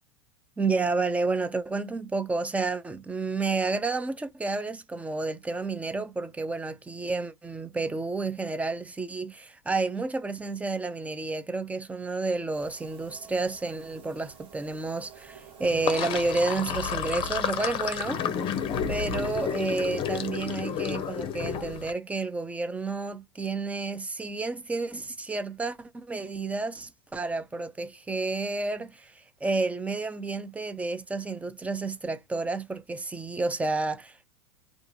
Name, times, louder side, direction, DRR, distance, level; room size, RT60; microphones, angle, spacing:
voice 1, 0.6-18.2 18.9-34.3, right 3 dB, 10° right, 0.4 m, -30 dB
sound 1, 12.5-20.3, right 7 dB, 35° right, 1.1 m, -50 dB
Sink (filling or washing), 15.6-21.9, left 8 dB, 35° left, 0.6 m, -31 dB
2.5 x 2.4 x 2.6 m
hypercardioid pair, 105°, 15 cm